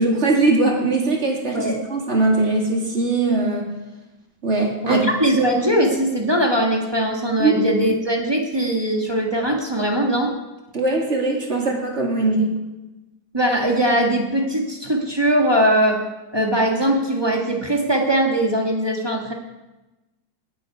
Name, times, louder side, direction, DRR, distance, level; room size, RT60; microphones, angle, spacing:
voice 1, 0.0-3.7 4.4-5.0 7.4-7.5 10.7-12.5, right 3 dB, 35° right, 0 dB, 2.4 m, -20 dB
voice 2, 4.8-10.3 13.3-16.0 16.3-19.3, right 1 dB, 15° right, 0 dB, 1.4 m, -20 dB
19.0 x 7.9 x 4.8 m, 1.1 s
omnidirectional pair, 2.1 m